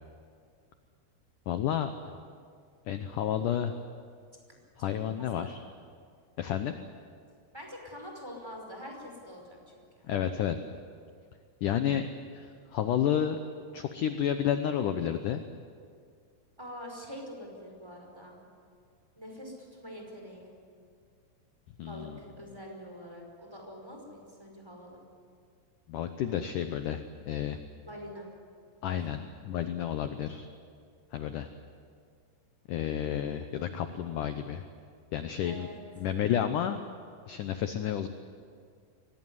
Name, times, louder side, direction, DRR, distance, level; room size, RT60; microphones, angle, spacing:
voice 1, 1.5-2.2 2.9-3.8 4.8-5.6 6.4-6.8 10.1-10.6 11.6-13.4 13.7-15.4 21.8-22.2 25.9-27.6 28.8-30.5 31.1-31.5 32.7-34.6 35.1-35.7 36.0-36.9 37.3-38.1, left 9 dB, 90° left, 8 dB, 1.8 m, -31 dB
voice 2, 5.2-5.5 7.5-10.1 16.6-18.4 19.1-20.5 21.9-25.0 27.8-28.3 28.8-29.0 35.4-35.8, equal, 5° right, 1 dB, 4.6 m, -45 dB
24.0 x 18.5 x 9.7 m, 2.2 s
omnidirectional pair, 5.0 m